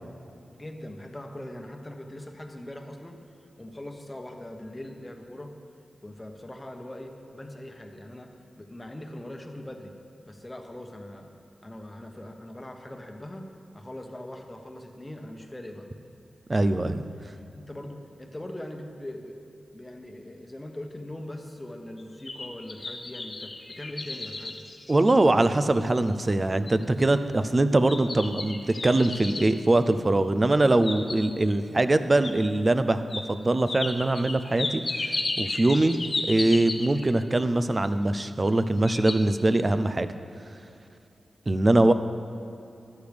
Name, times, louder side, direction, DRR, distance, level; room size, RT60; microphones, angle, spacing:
voice 1, 0.5-3.2 3.6-5.5 6.0-10.0 10.2-11.3 11.6-15.9 16.6-16.9 17.5-19.4 19.7-24.7, left 1 dB, 20° left, 3 dB, 1.1 m, -41 dB
voice 2, 16.5-17.0 24.9-34.8 35.4-36.0 36.3-40.1 41.5-41.9, right 2 dB, 35° right, 11 dB, 0.5 m, -22 dB
sound 1, 22.0-25.6 26.1-26.2 26.7-27.0 27.9-29.5 30.5-31.5 32.2-32.3 33.1-33.2 33.7-37.1 38.1-38.6 38.8-39.1, left 3 dB, 50° left, 0.9 m, -34 dB
13.0 x 12.0 x 3.5 m, 2.6 s
cardioid pair, 65°, 0 cm